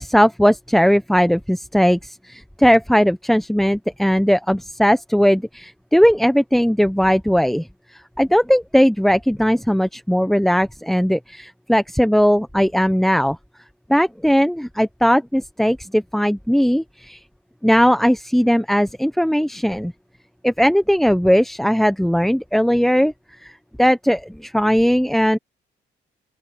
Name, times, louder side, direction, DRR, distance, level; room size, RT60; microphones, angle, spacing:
voice 1, 0.0-7.7 8.2-13.4 13.9-17.2 17.6-19.9 20.4-23.1 23.4-23.5 23.8-25.4, equal, ahead, 0.9 m, -18 dB
open air
cardioid pair, 90°, 20 cm